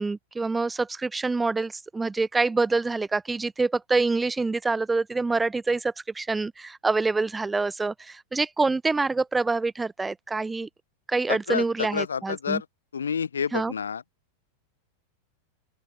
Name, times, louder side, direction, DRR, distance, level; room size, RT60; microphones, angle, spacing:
voice 1, 0.0-10.7 11.1-12.6 13.5-13.7, right 3 dB, 10° right, 3.2 m, -26 dB
voice 2, 11.3-12.7 12.9-14.0, left 7 dB, 70° left, 2.4 m, -29 dB
open air
figure-of-eight pair, 90°, 0 cm